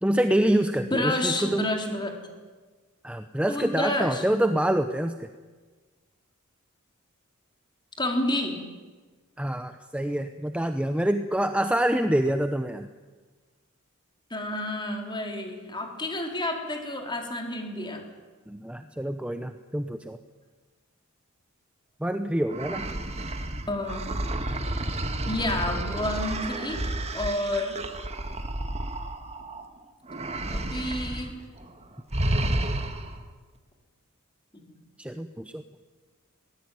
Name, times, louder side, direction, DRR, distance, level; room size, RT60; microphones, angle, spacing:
voice 1, 0.0-1.7 3.0-5.3 9.4-12.9 18.5-20.2 22.0-22.9 35.0-35.6, right 1 dB, 5° right, 8 dB, 0.8 m, -26 dB
voice 2, 0.8-2.2 3.5-4.2 8.0-8.6 14.3-18.0 23.7-24.0 25.3-26.8 27.1-27.8 30.5-31.4 34.5-34.6, left 1 dB, 20° left, 2 dB, 4.1 m, -29 dB
sound 1, 22.5-29.6 30.1-31.3 31.6-31.8 32.1-33.2, right 1 dB, 30° right, 1.8 m, -31 dB
22.0 x 18.5 x 9.5 m, 1.4 s
head